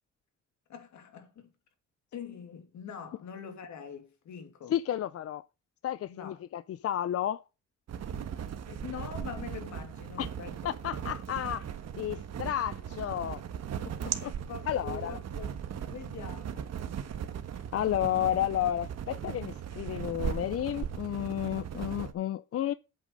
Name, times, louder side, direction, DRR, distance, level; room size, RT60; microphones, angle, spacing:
voice 1, 0.7-1.5 2.1-4.8 6.1-6.4 8.1-8.3 8.6-11.0 14.3-15.6 15.9-16.7, left 7 dB, 70° left, 2.6 m, -44 dB
voice 2, 4.7-5.4 5.8-7.4 10.2-10.3 10.6-11.7 12.0-13.4 14.2-14.3 14.7-15.2 17.7-22.7, left 11 dB, 50° left, 0.5 m, -31 dB
sound 1, 7.9-22.1, right 8 dB, 60° right, 1.4 m, -38 dB
8.5 x 8.3 x 5.3 m
cardioid pair, 90°, 30 cm